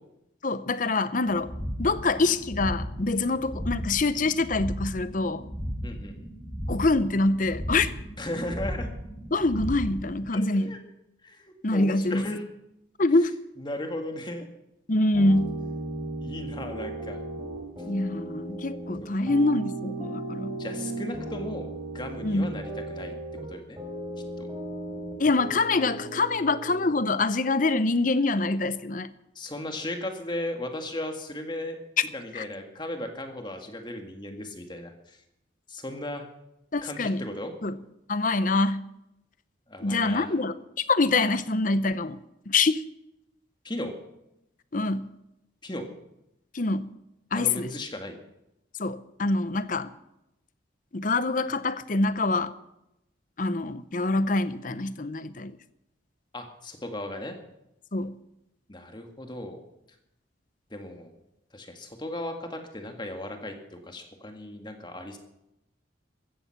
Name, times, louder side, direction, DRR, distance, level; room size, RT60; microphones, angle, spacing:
voice 1, 0.4-1.5 1.8-5.4 6.7-7.9 9.3-10.7 11.6-12.3 13.0-13.3 14.9-15.5 17.9-20.5 22.2-22.5 25.2-29.1 32.3-32.4 36.7-37.2 37.6-37.8 38.1-38.8 39.8-42.8 44.7-45.1 46.5-46.9 47.3-47.7 48.8-49.9 50.9-52.5 53.4-55.5 57.9-58.2, left 2 dB, 45° left, 14 dB, 0.7 m, -25 dB
sound 1, 1.2-10.3, equal, 5° right, 4.3 m, -35 dB
voice 2, 5.8-6.3 8.2-8.9 10.3-10.8 11.2-12.4 13.2-14.5 16.2-17.2 19.0-19.3 20.6-21.7 21.9-23.1 23.5-23.8 24.4-24.5 29.4-31.8 32.1-35.2 35.7-36.2 36.8-37.5 39.7-40.3 43.6-44.0 45.6-45.9 47.3-48.2 56.3-57.4 58.7-59.6 60.7-61.1 61.5-65.2, left 1 dB, 25° left, 4 dB, 1.9 m, -36 dB
sound 2, 15.1-26.9, right 2 dB, 20° right, 4.1 m, -36 dB
15.0 x 14.0 x 5.9 m, 0.87 s
head